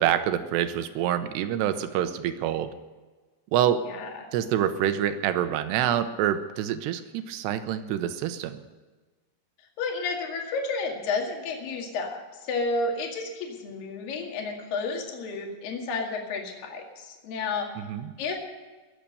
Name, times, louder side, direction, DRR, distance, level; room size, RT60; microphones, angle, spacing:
voice 1, 0.0-2.7 3.5-3.8 4.3-8.6 17.8-18.1, right 10 dB, 80° right, 10 dB, 2.8 m, -26 dB
voice 2, 3.9-4.3 9.8-17.7 18.2-18.4, left 4 dB, 55° left, 1 dB, 3.6 m, -31 dB
21.5 x 7.5 x 6.8 m, 1.3 s
omnidirectional pair, 5.1 m